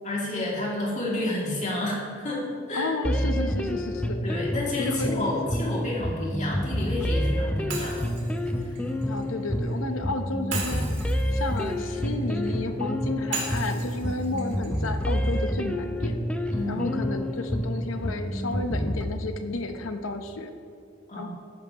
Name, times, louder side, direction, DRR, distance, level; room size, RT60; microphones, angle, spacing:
voice 1, 0.0-2.9 4.2-8.0 8.6-8.8 16.5-16.8 21.1-21.3, left 1 dB, 35° left, -4 dB, 2.6 m, -30 dB
voice 2, 2.7-4.2 4.8-5.5 9.1-10.9 11.3-16.2 16.7-20.5 21.1-21.3, left 2 dB, 75° left, 7 dB, 0.9 m, -32 dB
sound 1, 3.0-19.0, equal, 5° left, 0.5 m, -28 dB
Shatter, 7.7-9.8 10.5-12.6 13.3-15.4, right 4 dB, 60° right, 2.9 m, -38 dB
14.0 x 10.5 x 3.0 m, 2.5 s
head